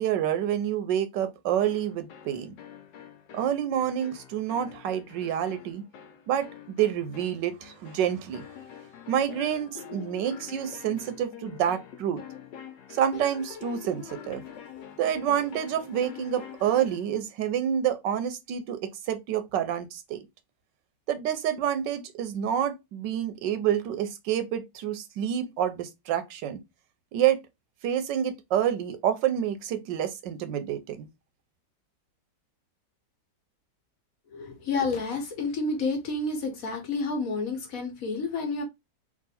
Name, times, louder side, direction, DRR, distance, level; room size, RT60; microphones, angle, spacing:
voice 1, 0.0-2.5 3.3-5.8 6.3-8.4 9.1-12.2 12.9-14.5 15.0-20.2 21.1-26.6 27.1-27.4 27.8-31.1, right 10 dB, 90° right, 1.4 m, -28 dB
sound 1, 1.6-17.1, left 8 dB, 80° left, 1.5 m, -46 dB
voice 2, 34.3-38.6, left 3 dB, 55° left, 1.4 m, -30 dB
3.7 x 2.6 x 4.1 m
omnidirectional pair, 1.9 m